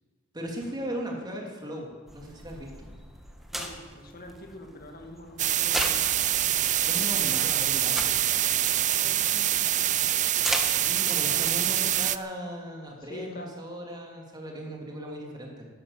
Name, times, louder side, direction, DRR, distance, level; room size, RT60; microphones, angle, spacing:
voice 1, 0.3-1.9 2.1-2.9 6.8-8.2 10.8-15.7, equal, 20° right, 0 dB, 3.1 m, -37 dB
sound 1, 2.1-11.4, equal, ahead, 1.5 m, -38 dB
voice 2, 3.5-6.0 8.9-10.3 11.2-11.5 13.0-13.6, left 1 dB, 45° left, 3 dB, 2.3 m, -44 dB
sound 2, 5.4-12.2, right 12 dB, 35° right, 0.5 m, -25 dB
13.0 x 11.5 x 8.4 m, 1.4 s
head